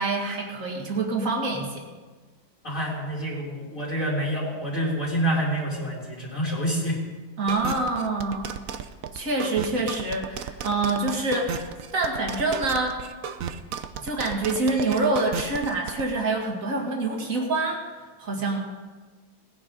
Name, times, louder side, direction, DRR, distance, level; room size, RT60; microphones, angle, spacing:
voice 1, 0.0-1.8 7.4-8.5 9.1-13.0 14.0-17.8 18.2-18.7, right 2 dB, 40° right, 0 dB, 2.4 m, -26 dB
voice 2, 2.6-7.0, right 1 dB, 40° left, -8 dB, 3.9 m, -27 dB
sound 1, 7.5-16.0, right 8 dB, 65° right, 0.8 m, -34 dB
19.5 x 10.0 x 3.9 m, 1.4 s
omnidirectional pair, 2.2 m